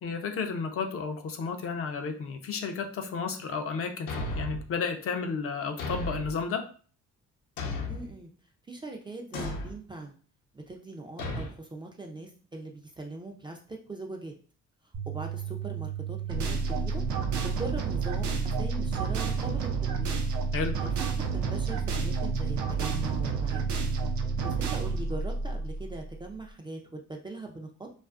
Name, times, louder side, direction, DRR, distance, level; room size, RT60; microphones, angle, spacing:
voice 1, 0.0-6.7 20.5-20.8, left 5 dB, 50° left, 5 dB, 0.5 m, -32 dB
Thump thud, 4.1-4.7 5.8-6.4 7.6-8.1 9.3-9.8 11.2-11.5, left 1 dB, 75° left, 0.7 m, -34 dB
voice 2, 7.9-8.3 8.7-10.2 10.5-14.4 15.1-17.1 17.4-20.2 20.8-23.7 24.4-27.9, right 2 dB, 15° right, 1 dB, 0.4 m, -41 dB
sound 1, 14.9-25.0, right 11 dB, 55° right, 1.0 m, -35 dB
sound 2, 16.3-26.2, right 4 dB, 70° right, 0.5 m, -31 dB
2.4 x 2.4 x 2.4 m, 0.40 s
cardioid pair, 90°, 30 cm